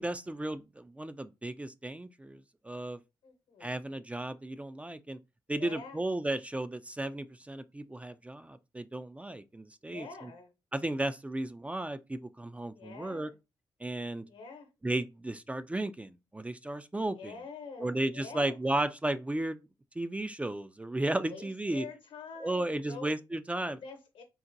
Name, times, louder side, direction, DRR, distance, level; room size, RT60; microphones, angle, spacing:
voice 1, 0.0-3.0 3.6-5.2 5.5-10.1 10.7-13.3 13.8-14.2 14.8-17.3 17.8-19.6 20.0-21.9 22.4-23.8, right 1 dB, 15° right, 0.3 m, -34 dB
voice 2, 3.2-4.0 5.6-6.0 9.9-10.5 12.7-13.3 14.2-14.7 17.1-18.6 21.3-23.2 23.6-24.2, left 4 dB, 80° left, 0.9 m, -46 dB
3.9 x 2.1 x 2.6 m
supercardioid pair, 55°, 9 cm